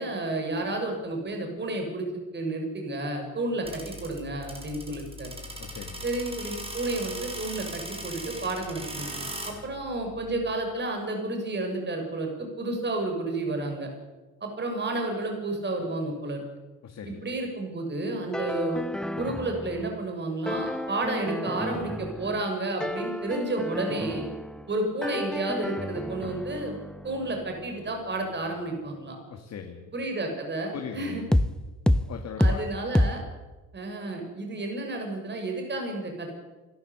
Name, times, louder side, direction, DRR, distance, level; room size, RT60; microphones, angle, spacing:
voice 1, 0.0-2.1 2.3-5.3 6.0-13.9 14.4-16.4 17.0-18.8 19.2-24.2 24.7-26.8 27.0-29.2 29.9-31.2 32.4-33.2 33.7-36.3, right 2 dB, 35° right, 3 dB, 6.2 m, -31 dB
sound 1, 3.6-10.5, right 1 dB, 15° right, 5.3 m, -39 dB
voice 2, 5.6-6.0 9.5-9.6 16.8-17.2 29.3-29.9 30.7-31.3 32.1-32.6, left 7 dB, 55° left, 3 dB, 2.5 m, -39 dB
sound 2, 18.3-20.1 20.5-22.5 22.8-24.8 25.0-28.7 31.3-31.5 31.9-32.1 32.4-32.6 32.9-33.1, left 1 dB, ahead, 0.8 m, -30 dB
27.5 x 13.0 x 8.2 m, 1.2 s
cardioid pair, 110°, 32 cm